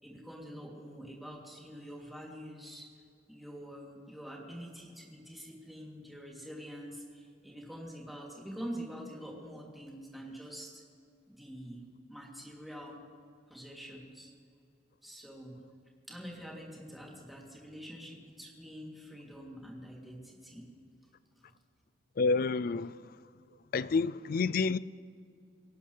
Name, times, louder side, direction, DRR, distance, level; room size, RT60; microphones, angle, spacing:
voice 1, 0.0-2.9 3.3-10.8 11.3-11.8 12.1-13.0 13.5-14.3 15.0-15.6 16.1-20.7, equal, ahead, 3.0 m, -46 dB
voice 2, 22.2-22.9 23.7-24.8, left 4 dB, 50° left, 0.4 m, -28 dB
22.5 x 18.5 x 3.4 m
head